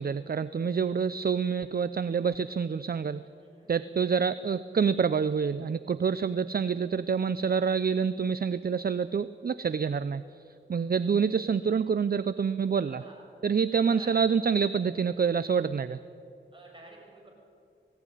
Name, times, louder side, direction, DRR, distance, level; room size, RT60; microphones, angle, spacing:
voice 1, 0.0-3.2 3.7-13.0 13.4-16.0, right 6 dB, 50° right, 15 dB, 0.6 m, -27 dB
voice 2, 3.2-4.3 12.7-13.2 13.8-14.3 16.5-17.3, right 2 dB, 25° right, -2 dB, 7.8 m, -52 dB
20.0 x 17.0 x 10.0 m, 2.6 s
cardioid pair, 60°, 20 cm